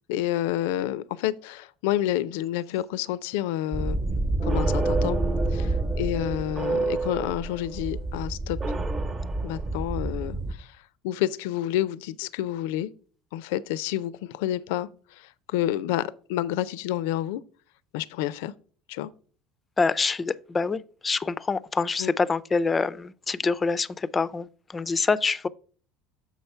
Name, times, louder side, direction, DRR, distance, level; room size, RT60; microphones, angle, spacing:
voice 1, 0.1-4.0 4.4-5.2 5.5-8.6 9.4-10.8 11.0-12.9 13.3-17.4 17.9-18.5 18.9-19.1 22.0-22.1, left 13 dB, 85° left, 0.4 m, -29 dB
sound 1, 3.7-10.5, right 2 dB, 25° right, 1.0 m, -27 dB
voice 2, 19.8-25.5, left 4 dB, 20° left, 0.4 m, -26 dB
7.2 x 5.6 x 4.4 m
cardioid pair, 130°, 0 cm